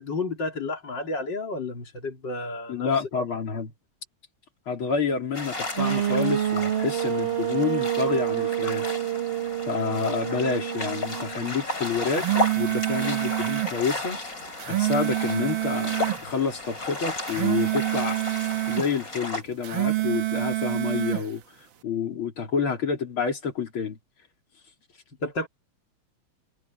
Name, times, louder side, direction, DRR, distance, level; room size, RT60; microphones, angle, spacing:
voice 1, 0.0-2.9 25.2-25.5, left 3 dB, 60° left, 3.6 m, -31 dB
voice 2, 2.7-3.7 4.7-9.0 9.7-12.3 12.6-14.3 14.7-18.2 18.7-21.4 21.8-24.0, left 5 dB, 80° left, 3.9 m, -28 dB
sound 1, 5.3-19.4, left 2 dB, 40° left, 5.2 m, -34 dB
sound 2, 5.8-11.6, right 11 dB, 35° right, 1.2 m, -28 dB
sound 3, 11.9-13.8 14.4-16.2 17.1-18.9 19.5-21.3, right 15 dB, 70° right, 1.8 m, -26 dB
omnidirectional pair, 2.3 m